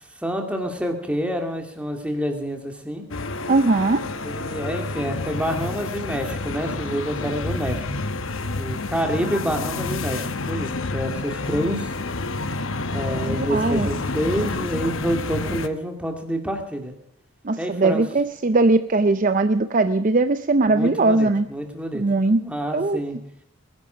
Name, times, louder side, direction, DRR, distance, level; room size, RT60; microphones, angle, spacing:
voice 1, 0.2-3.0 4.2-7.9 8.5-11.9 12.9-16.9 17.6-18.0 20.7-23.2, equal, 5° right, 3 dB, 2.3 m, -28 dB
sound 1, 3.1-15.7, left 3 dB, 65° left, 1.0 m, -29 dB
voice 2, 3.5-4.0 13.3-13.9 17.4-21.5 21.9-22.4 22.7-23.0, right 3 dB, 40° right, 11 dB, 0.6 m, -20 dB
21.0 x 10.5 x 5.1 m, 0.77 s
head